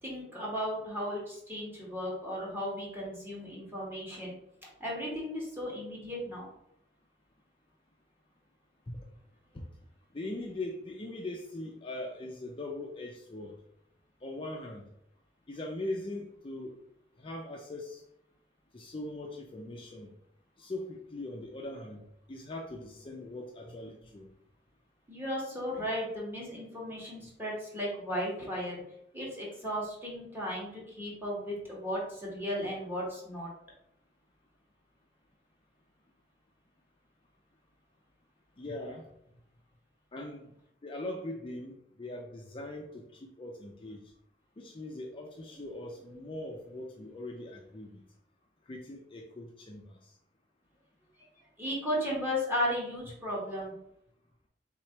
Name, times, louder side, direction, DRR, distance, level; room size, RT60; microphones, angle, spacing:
voice 1, 0.0-4.3 4.8-6.5 25.1-28.8 29.1-33.5 51.6-53.7, equal, 15° right, -5 dB, 1.6 m, -35 dB
voice 2, 10.1-13.6 14.2-14.8 15.5-16.8 17.2-18.0 18.7-20.1 20.6-22.0 22.3-24.3 38.6-39.1 40.1-40.5 40.8-44.0 44.6-48.0 48.7-50.0, left 2 dB, 30° left, 0 dB, 0.5 m, -41 dB
3.7 x 3.1 x 4.5 m, 0.75 s
head